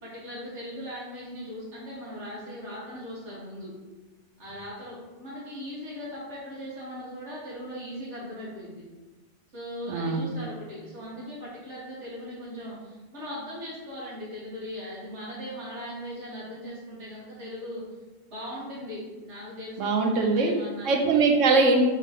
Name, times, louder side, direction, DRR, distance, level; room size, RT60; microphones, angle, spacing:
voice 1, 0.0-3.7 4.4-8.8 9.5-17.8 18.3-21.0, equal, 70° right, -8 dB, 2.0 m, -39 dB
voice 2, 9.9-10.3 19.8-20.5 20.8-21.9, right 3 dB, 90° right, 3 dB, 1.0 m, -22 dB
3.8 x 3.7 x 3.5 m, 1.2 s
omnidirectional pair, 1.2 m